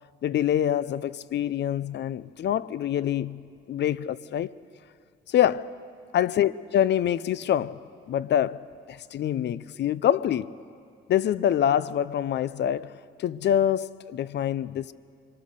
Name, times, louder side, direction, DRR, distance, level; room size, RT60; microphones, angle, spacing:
voice 1, 0.2-4.5 5.3-5.7 6.1-7.8 8.1-10.5 11.1-14.9, left 10 dB, 60° left, 0.6 m, -25 dB
24.5 x 22.0 x 6.8 m
cardioid pair, 90°, 20 cm